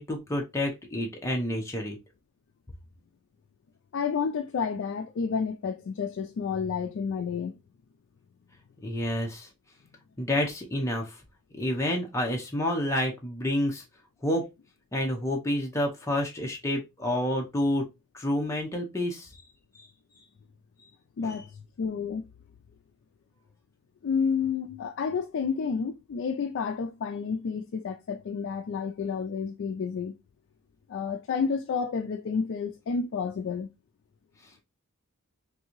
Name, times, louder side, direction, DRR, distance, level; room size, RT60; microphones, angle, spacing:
voice 1, 0.0-2.0 8.8-9.5 10.2-11.2 11.6-13.8 14.2-14.4 14.9-17.8 18.1-19.3 19.7-19.9 21.2-21.3, left 1 dB, 15° left, 0.7 m, -29 dB
voice 2, 3.9-7.6 21.2-22.2 24.0-30.1 30.9-33.7, left 6 dB, 60° left, 0.3 m, -30 dB
3.7 x 2.6 x 2.9 m
head